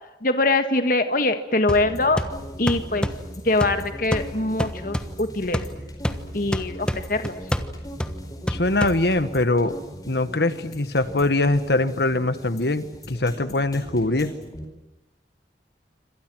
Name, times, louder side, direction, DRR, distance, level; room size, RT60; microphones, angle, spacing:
voice 1, 0.2-2.2 2.6-3.1 3.4-5.6 6.3-7.4, left 2 dB, 50° left, 8 dB, 1.7 m, -23 dB
sound 1, 1.7-14.6, equal, 20° left, 4.8 m, -40 dB
sound 2, 1.7-9.4, equal, 5° left, 1.2 m, -30 dB
voice 2, 8.5-9.7 10.1-14.3, left 2 dB, 65° left, 12 dB, 1.5 m, -22 dB
28.0 x 26.0 x 6.3 m, 1.0 s
head